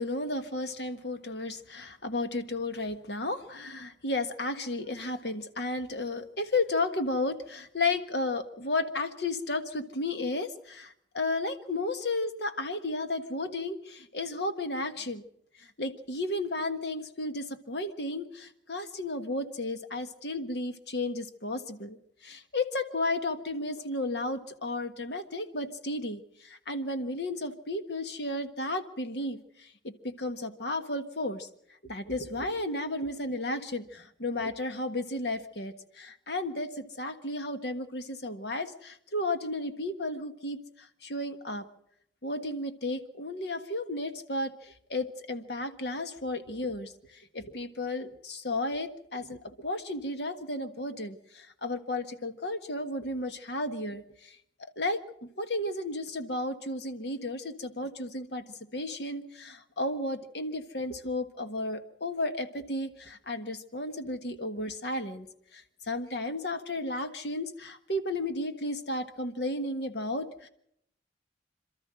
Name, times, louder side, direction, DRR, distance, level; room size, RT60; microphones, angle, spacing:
voice 1, 0.0-15.2 15.6-22.0 22.2-31.5 31.8-41.6 42.2-54.4 54.8-58.4 58.7-65.3 65.5-70.5, left 2 dB, 70° left, 8 dB, 1.5 m, -33 dB
27.5 x 13.0 x 7.6 m, 0.74 s
head